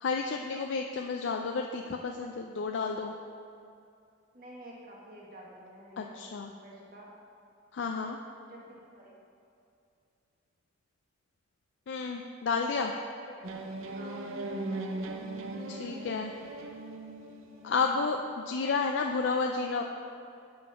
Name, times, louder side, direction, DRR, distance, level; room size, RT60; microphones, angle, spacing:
voice 1, 0.0-3.1 6.0-6.5 7.7-8.2 11.9-12.9 15.7-16.3 17.6-19.8, left 4 dB, 60° left, 2 dB, 0.4 m, -31 dB
voice 2, 4.3-6.3 6.5-7.1 8.5-9.2 13.1-13.7 13.9-14.2, right 1 dB, 45° right, -4 dB, 1.5 m, -50 dB
sound 1, 13.4-18.1, right 2 dB, 80° right, 0.7 m, -39 dB
7.5 x 5.1 x 5.7 m, 2.5 s
head